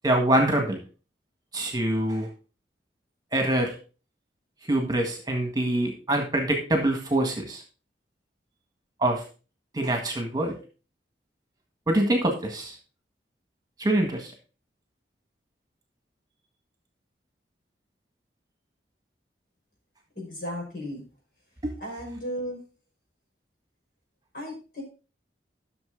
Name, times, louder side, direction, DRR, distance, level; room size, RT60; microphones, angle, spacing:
voice 1, 0.0-0.8 1.5-2.3 3.3-3.7 4.7-7.6 9.0-9.2 9.7-10.6 11.9-12.7 13.8-14.3 21.6-21.7, right 1 dB, 20° right, 3 dB, 1.7 m, -24 dB
voice 2, 20.2-21.0 21.8-22.6 24.3-24.8, equal, 55° left, -1 dB, 5.3 m, -35 dB
12.0 x 6.5 x 3.8 m, 0.35 s
head